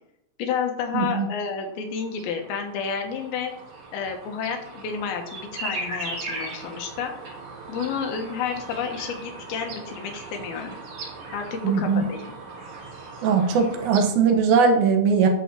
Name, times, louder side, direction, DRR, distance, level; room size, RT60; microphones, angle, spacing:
voice 1, 0.4-3.5 3.9-7.1 7.7-10.8 11.3-12.2, left 6 dB, 85° left, 3 dB, 3.1 m, -30 dB
voice 2, 0.9-1.3 11.6-12.0 13.2-15.3, right 5 dB, 85° right, 4 dB, 3.1 m, -20 dB
sound 1, 1.8-14.1, right 3 dB, 65° right, 4.2 m, -38 dB
11.0 x 4.3 x 7.4 m, 0.80 s
omnidirectional pair, 4.3 m